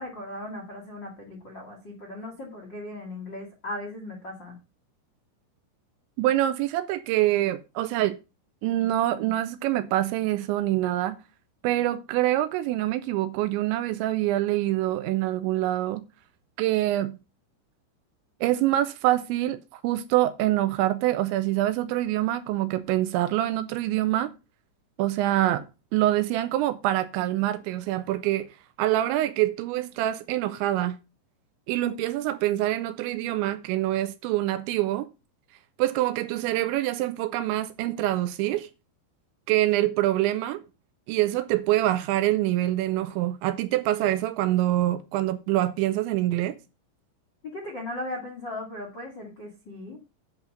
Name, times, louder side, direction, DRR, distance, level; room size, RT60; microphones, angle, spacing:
voice 1, 0.0-4.6 47.4-50.0, left 1 dB, 55° left, 1.2 m, -37 dB
voice 2, 6.2-8.2 8.6-11.2 11.6-16.0 16.6-17.2 18.4-24.3 25.0-25.7 25.9-28.5 28.8-31.0 31.7-35.1 35.8-38.7 39.5-40.6 41.1-46.6, right 14 dB, 80° right, 2.8 m, -25 dB
10.5 x 4.1 x 6.4 m
omnidirectional pair, 5.5 m